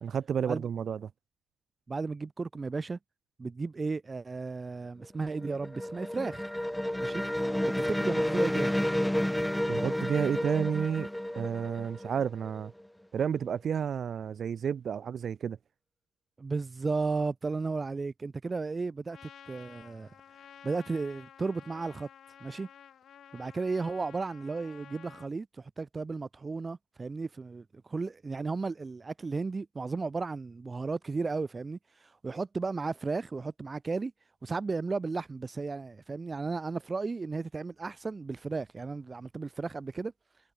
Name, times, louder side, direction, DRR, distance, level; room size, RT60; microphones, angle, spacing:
voice 1, 0.0-1.0 9.7-11.1 11.3-12.7 13.1-15.6, right 7 dB, 55° right, 0.7 m, -31 dB
voice 2, 1.9-3.0 3.4-6.4 7.0-7.2 7.8-8.8 16.4-20.1 20.6-22.1 22.4-22.7 23.3-31.8 32.2-34.1 34.4-40.1, right 4 dB, 30° right, 2.6 m, -34 dB
sound 1, 5.0-12.8, left 1 dB, 5° left, 1.3 m, -31 dB
Trumpet, 19.1-25.3, left 9 dB, 65° left, 3.0 m, -52 dB
cardioid pair, 90°, 0 cm